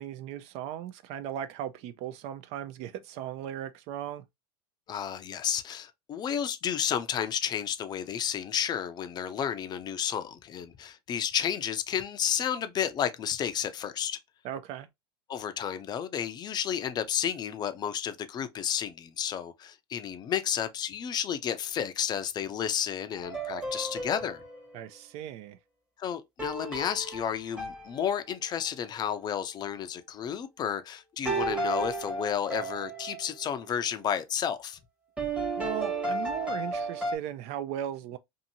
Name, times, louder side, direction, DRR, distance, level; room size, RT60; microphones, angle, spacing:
voice 1, 0.0-4.2 14.4-14.9 24.7-25.6 35.6-38.2, right 11 dB, 55° right, 0.4 m, -37 dB
voice 2, 4.9-14.2 15.3-24.4 26.0-34.8, left 9 dB, 35° left, 0.5 m, -32 dB
sound 1, 23.2-24.8 26.4-28.6 31.3-33.3 35.2-37.2, right 2 dB, 5° right, 0.9 m, -33 dB
2.7 x 2.6 x 2.7 m
supercardioid pair, 110°, 13 cm